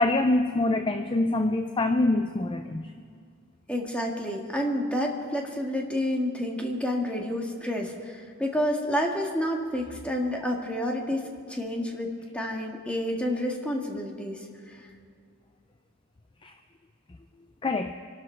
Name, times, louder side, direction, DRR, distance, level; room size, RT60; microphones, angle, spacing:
voice 1, 0.0-2.9 16.4-16.5 17.6-17.9, left 2 dB, 25° left, 8 dB, 0.5 m, -25 dB
voice 2, 3.7-14.4, equal, 5° left, 0 dB, 1.8 m, -29 dB
25.0 x 12.0 x 4.5 m, 2.3 s
head